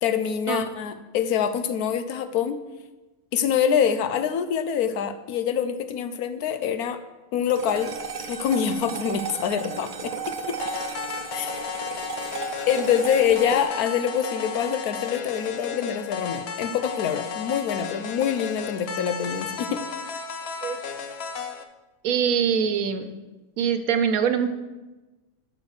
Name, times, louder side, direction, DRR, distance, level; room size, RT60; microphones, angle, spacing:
voice 1, 0.0-2.6 3.3-7.0 7.3-7.9 8.3-10.6 11.3-11.6 12.7-19.8, left 8 dB, 85° left, 10 dB, 1.2 m, -25 dB
sound 1, 7.5-16.0, right 5 dB, 45° right, 0.7 m, -35 dB
sound 2, 10.6-21.6, left 6 dB, 55° left, 0.9 m, -34 dB
voice 2, 22.0-23.1 23.6-24.5, right 7 dB, 75° right, 9 dB, 1.2 m, -23 dB
12.5 x 4.3 x 6.5 m, 1.1 s
omnidirectional pair, 1.5 m